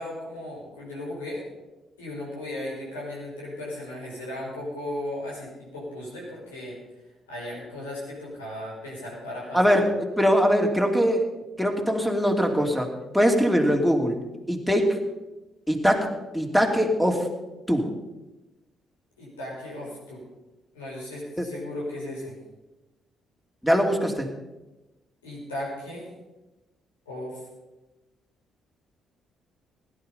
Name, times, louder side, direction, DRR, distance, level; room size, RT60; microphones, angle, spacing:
voice 1, 0.0-1.4 2.0-6.8 7.3-9.7 19.2-20.2 20.7-22.4 25.2-26.1 27.1-27.4, left 1 dB, 90° left, -5 dB, 5.2 m, -36 dB
voice 2, 9.5-11.2 11.6-12.9 13.1-14.2 14.5-15.0 15.7-16.1 16.3-17.3 17.7-17.9 21.4-21.5 23.6-24.3, equal, ahead, 2 dB, 2.9 m, -22 dB
17.0 x 10.5 x 5.6 m, 1.1 s
hypercardioid pair, 45°, 0 cm